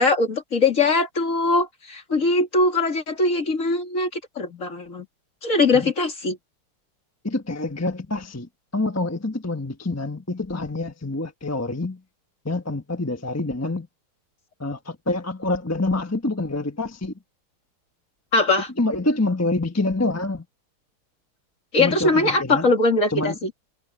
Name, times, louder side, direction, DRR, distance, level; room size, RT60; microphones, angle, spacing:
voice 1, 0.0-5.0 5.4-6.4 18.3-18.7 21.7-23.5, left 3 dB, 35° left, 3.0 m, -21 dB
voice 2, 7.2-12.0 12.4-13.9 14.6-17.1 18.8-20.4 21.8-22.7 23.1-23.4, left 2 dB, 10° left, 0.7 m, -26 dB
omnidirectional pair, 2.4 m